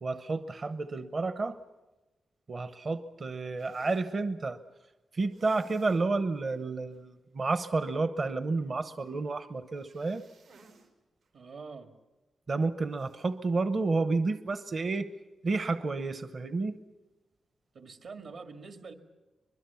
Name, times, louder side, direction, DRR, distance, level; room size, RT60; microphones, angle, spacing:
voice 1, 0.0-1.6 2.5-4.6 5.1-10.2 12.5-15.1 15.4-16.7, right 3 dB, 35° right, 11 dB, 0.9 m, -30 dB
sound 1, 3.6-4.1 5.3-6.1 6.4-6.5 6.9-7.0 9.7-10.9 11.2-11.3 12.9-13.3, right 3 dB, 80° right, 4.1 m, -58 dB
voice 2, 11.3-11.9 17.7-18.9, right 4 dB, 65° right, 6 dB, 2.1 m, -45 dB
24.5 x 22.0 x 7.1 m, 1.1 s
wide cardioid pair, 160°, 0 cm